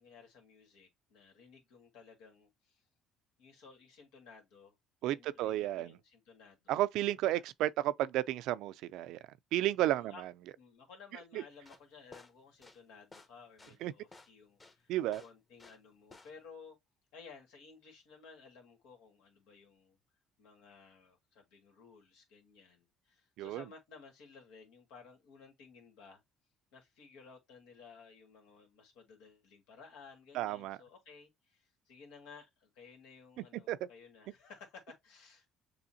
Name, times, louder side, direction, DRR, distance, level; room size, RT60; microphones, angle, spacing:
voice 1, 0.0-2.8 3.4-4.8 5.0-6.8 7.3-7.4 9.8-10.2 10.5-14.9 15.2-16.8 17.1-20.0 20.4-26.2 26.7-35.5, left 5 dB, 85° left, 2.0 m, -56 dB
voice 2, 5.0-5.9 6.7-9.2 9.5-10.1 11.3-11.4 13.8-13.9 14.9-15.2 23.4-23.6 30.3-30.8 33.7-33.8, right 14 dB, 80° right, 0.4 m, -32 dB
sound 1, 11.5-16.5, left 3 dB, 25° left, 1.2 m, -56 dB
7.0 x 2.7 x 2.8 m
cardioid pair, 95°, 0 cm